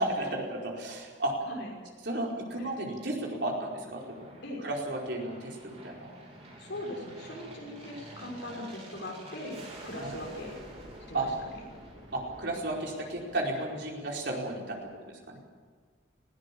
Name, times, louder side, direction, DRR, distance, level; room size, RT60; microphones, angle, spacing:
voice 1, 0.0-1.3 2.0-4.3 4.6-6.1 10.0-10.2 11.1-11.3 12.1-14.8 15.1-15.4, right 1 dB, 60° right, -1 dB, 4.8 m, -33 dB
Aircraft, 1.8-14.5, right 1 dB, 30° right, 4.2 m, -50 dB
voice 2, 6.6-10.6 11.1-11.3, left 1 dB, 70° left, -1 dB, 6.0 m, -40 dB
20.0 x 16.5 x 8.5 m, 1.5 s
head